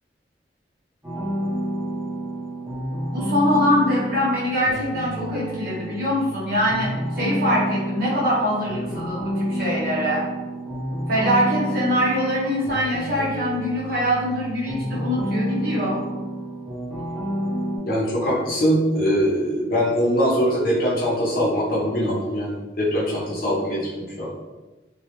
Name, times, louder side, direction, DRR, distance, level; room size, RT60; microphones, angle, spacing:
sound 1, 1.0-17.8, equal, 10° right, 0.6 m, -29 dB
voice 1, 3.1-10.3 11.1-16.0, equal, 60° right, -6 dB, 0.9 m, -23 dB
voice 2, 17.9-24.3, equal, 55° left, -5 dB, 0.7 m, -22 dB
2.2 x 2.1 x 2.8 m, 1.2 s
head